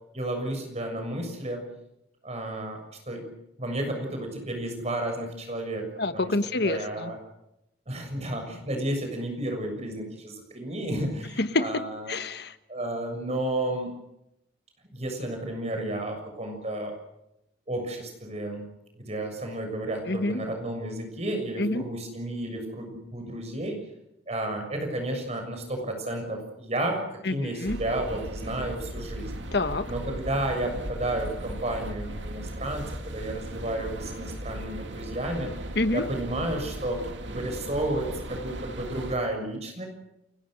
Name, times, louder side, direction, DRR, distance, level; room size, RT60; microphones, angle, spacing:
voice 1, 0.1-1.7 2.2-2.8 3.1-3.3 3.6-5.9 6.1-6.3 6.6-7.2 7.9-12.2 12.7-13.9 14.9-17.0 17.7-18.6 19.0-23.8 24.3-29.3 29.9-35.5 35.9-39.9, right 1 dB, 35° right, 4 dB, 6.9 m, -32 dB
voice 2, 6.0-7.1 11.4-11.8 12.1-12.6 20.1-20.4 21.6-21.8 27.2-27.8 29.5-29.9 35.7-36.1, left 2 dB, 60° left, 11 dB, 1.3 m, -27 dB
sound 1, 27.6-39.2, right 1 dB, 85° right, 2.5 m, -37 dB
30.0 x 23.0 x 6.6 m, 0.86 s
head